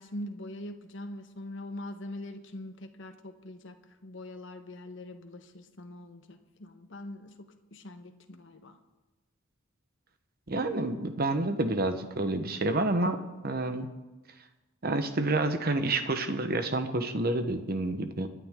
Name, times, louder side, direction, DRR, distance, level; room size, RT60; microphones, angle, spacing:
voice 1, 0.0-8.8, left 1 dB, 65° left, 6 dB, 1.2 m, -43 dB
voice 2, 10.5-13.9 14.8-18.3, right 2 dB, 50° right, 8 dB, 1.2 m, -29 dB
26.0 x 10.5 x 3.8 m, 1.1 s
head